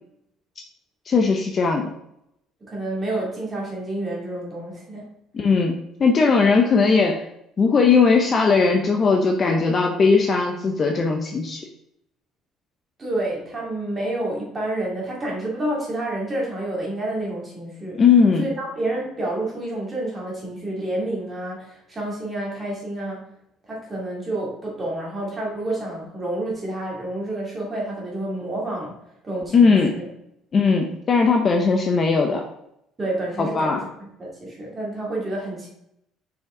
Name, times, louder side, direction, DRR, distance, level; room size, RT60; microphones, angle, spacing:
voice 1, 1.1-1.9 5.3-7.2 7.6-11.6 18.0-18.5 29.5-30.0 30.5-32.4 33.4-33.8, left 4 dB, 30° left, 3 dB, 0.6 m, -18 dB
voice 2, 2.7-5.1 13.0-18.0 18.4-23.3 23.7-28.9 29.2-30.1 33.0-35.7, right 1 dB, 20° right, -4 dB, 2.4 m, -29 dB
6.3 x 5.0 x 3.7 m, 0.79 s
cardioid pair, 160°, 0 cm